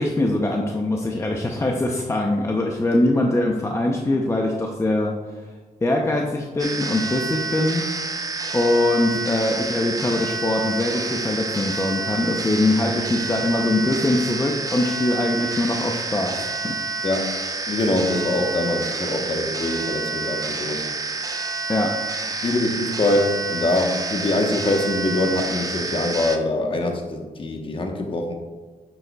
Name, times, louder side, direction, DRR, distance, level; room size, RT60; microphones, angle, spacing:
voice 1, 0.0-5.2 5.8-7.8 8.5-16.8 21.7-21.9, left 2 dB, 20° left, 0 dB, 0.6 m, -22 dB
sound 1, 6.6-26.4, right 3 dB, 25° right, 0.5 m, -29 dB
voice 2, 17.0-17.3 17.7-20.9 22.4-28.4, left 2 dB, 40° left, 2 dB, 1.0 m, -23 dB
8.7 x 6.6 x 2.3 m, 1.3 s
wide cardioid pair, 120°, 14 cm